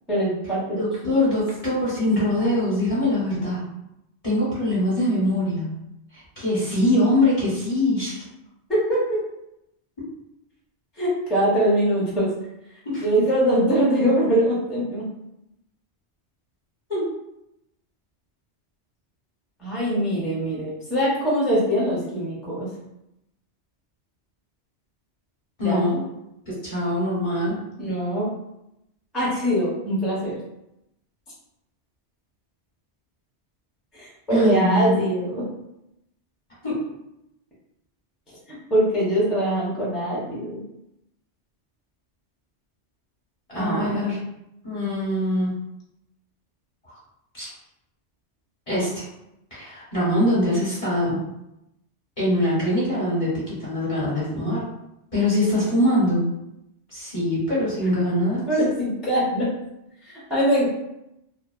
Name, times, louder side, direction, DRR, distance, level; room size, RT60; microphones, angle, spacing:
voice 1, 0.1-1.1 8.7-9.0 11.0-12.3 13.0-15.0 19.6-22.7 25.6-25.8 27.8-28.3 29.1-30.4 33.9-35.5 38.5-40.6 43.5-43.9 58.5-59.5 60.0-60.7, equal, ahead, -7 dB, 0.6 m, -23 dB
voice 2, 0.8-3.6 4.2-5.7 6.1-8.2 12.8-13.0 16.9-17.0 25.6-26.0 26.5-27.6 34.3-35.1 36.6-36.7 43.5-44.2 44.6-45.6 47.3-47.5 48.7-49.0 49.5-51.2 52.2-54.6 55.1-56.3 56.9-58.4, left 1 dB, 35° left, -8 dB, 0.9 m, -23 dB
2.4 x 2.3 x 2.3 m, 0.85 s
omnidirectional pair, 1.2 m